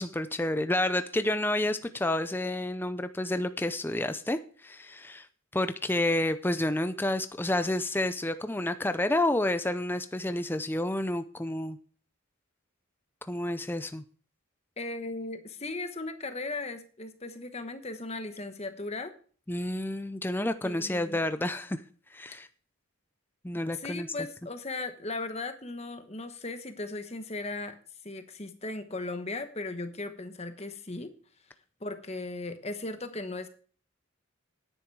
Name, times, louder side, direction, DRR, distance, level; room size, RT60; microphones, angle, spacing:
voice 1, 0.0-5.3 5.5-11.8 13.2-14.0 19.5-21.8 22.1-22.5 23.4-24.1, left 1 dB, 10° left, 10 dB, 0.5 m, -30 dB
voice 2, 14.8-19.1 20.6-21.2 23.7-27.8 28.0-31.1 31.8-33.5, left 2 dB, 30° left, 9 dB, 1.1 m, -37 dB
10.5 x 9.9 x 4.7 m, 0.43 s
head